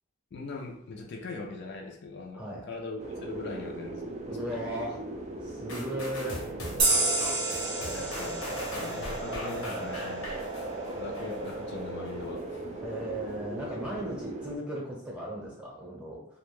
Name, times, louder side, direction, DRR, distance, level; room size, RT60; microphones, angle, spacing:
voice 1, 0.3-4.6 7.9-10.2 11.0-12.7, left 3 dB, 55° left, 1 dB, 0.4 m, -41 dB
sound 1, 3.0-14.6, right 2 dB, 35° right, 0.3 m, -38 dB
voice 2, 4.3-5.0 5.4-6.5 9.6-9.9 12.8-16.2, right 1 dB, 5° right, -4 dB, 0.7 m, -36 dB
sound 2, 5.7-11.5 12.1-12.2, left 1 dB, 85° left, 0.8 m, -41 dB
sound 3, 6.8-10.1, right 3 dB, 55° right, 0.7 m, -30 dB
2.4 x 2.1 x 3.2 m, 0.70 s
head